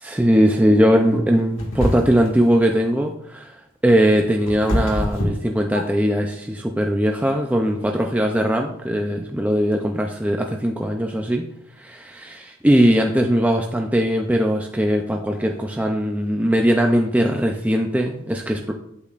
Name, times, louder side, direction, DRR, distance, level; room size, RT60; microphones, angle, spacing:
voice 1, 0.0-11.4 11.8-18.7, equal, 5° right, 2 dB, 0.4 m, -20 dB
sound 1, 1.6-2.4 3.9-6.2, equal, 70° left, 1.9 m, -25 dB
8.5 x 8.3 x 2.5 m, 0.76 s
head